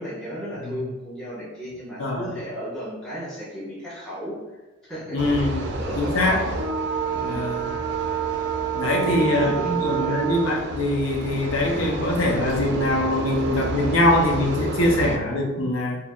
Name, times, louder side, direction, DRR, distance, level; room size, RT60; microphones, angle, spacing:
voice 1, 0.0-4.4 4.8-6.5 7.1-7.4 8.9-10.2, equal, 5° left, -12 dB, 1.4 m, -34 dB
voice 2, 5.1-5.7 6.0-6.4 7.1-7.7 8.7-16.0, left 1 dB, 75° left, -1 dB, 0.8 m, -23 dB
sound 1, 5.2-15.2, right 4 dB, 55° right, 0.4 m, -28 dB
4.5 x 2.7 x 2.4 m, 1.1 s
head